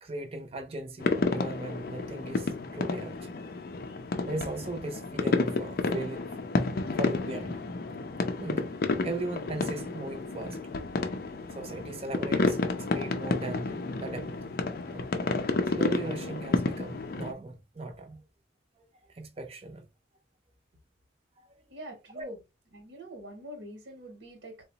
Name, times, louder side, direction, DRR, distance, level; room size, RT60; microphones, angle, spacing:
voice 1, 0.0-3.3 4.2-6.4 7.0-7.6 8.4-8.7 9.0-10.6 11.6-12.6 12.9-14.3 14.9-15.1 15.7-18.2 19.1-19.9 21.5-21.6 22.1-22.3, right 2 dB, 30° right, 0.5 m, -38 dB
sound 1, 1.0-17.3, left 3 dB, 50° left, 0.4 m, -31 dB
voice 2, 21.7-22.4 22.7-24.6, right 1 dB, 70° right, 0.9 m, -45 dB
3.8 x 2.1 x 2.8 m
head